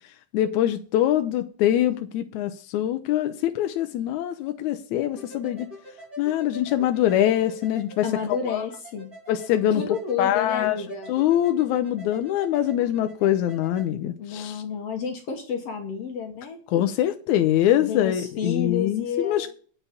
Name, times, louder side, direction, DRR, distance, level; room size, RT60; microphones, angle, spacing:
voice 1, 0.3-5.7 6.2-8.6 9.3-9.8 10.2-10.8 11.1-14.6 16.7-19.5, left 12 dB, 80° left, 2.0 m, -24 dB
sound 1, 5.2-13.9, equal, 20° right, 6.1 m, -45 dB
voice 2, 8.0-9.1 9.8-11.1 14.2-16.6 17.8-19.5, left 7 dB, 60° left, 2.1 m, -30 dB
9.0 x 5.6 x 7.9 m
omnidirectional pair, 3.5 m